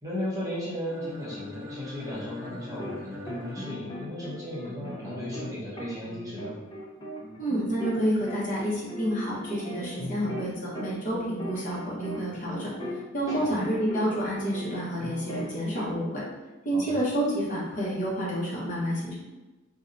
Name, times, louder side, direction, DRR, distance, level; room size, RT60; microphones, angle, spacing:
voice 1, 0.0-6.6 13.3-13.5 16.7-17.0, left 1 dB, 15° right, -7 dB, 0.7 m, -36 dB
sound 1, 0.8-4.7, left 2 dB, 70° right, 1.1 m, -44 dB
sound 2, 2.1-3.0 3.3-8.0 8.3-13.0 13.3-15.9, left 1 dB, 25° left, 0.4 m, -39 dB
voice 2, 7.4-12.7 13.1-16.2 16.6-19.1, equal, 40° left, -6 dB, 0.9 m, -29 dB
2.7 x 2.2 x 3.7 m, 1.2 s
head